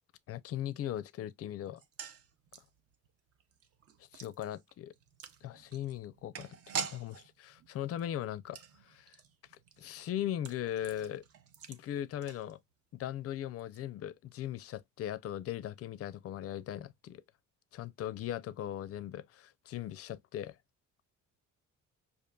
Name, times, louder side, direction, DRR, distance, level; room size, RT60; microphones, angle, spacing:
voice 1, 0.3-1.8 4.1-4.9 5.4-8.6 8.8-9.1 9.8-11.2 11.7-12.6 12.9-17.2 17.7-20.6, left 11 dB, 50° left, 0.4 m, -39 dB
sound 1, 1.7-13.0 13.2-13.3 13.6-13.8, right 6 dB, 50° right, 0.6 m, -46 dB
5.1 x 2.5 x 2.2 m
cardioid pair, 125°, 31 cm